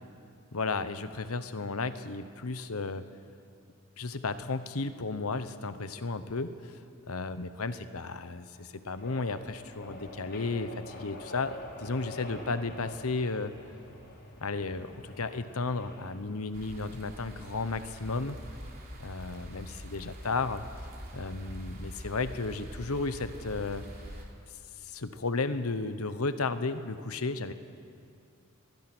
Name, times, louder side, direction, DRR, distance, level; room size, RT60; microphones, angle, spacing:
voice 1, 0.5-3.0 4.0-6.7 7.1-11.5 11.8-13.5 14.4-18.4 19.0-20.6 21.1-23.8 24.8-27.5, left 3 dB, 75° left, 11 dB, 1.0 m, -33 dB
sound 1, 8.9-16.1, left 2 dB, 50° left, 3.8 m, -46 dB
sound 2, 16.5-24.2, equal, 45° right, 3.4 m, -44 dB
23.0 x 20.5 x 6.2 m, 2.5 s
head